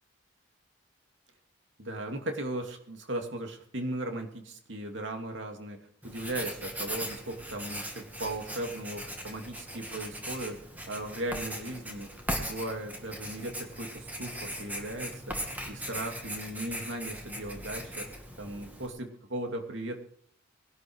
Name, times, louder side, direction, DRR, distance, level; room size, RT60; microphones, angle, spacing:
voice 1, 1.8-5.8 6.0-10.6 10.9-20.0, right 1 dB, 65° right, 4 dB, 2.7 m, -37 dB
Writing, 6.0-18.9, equal, 10° right, 2.5 m, -39 dB
20.5 x 12.0 x 4.7 m, 0.64 s
head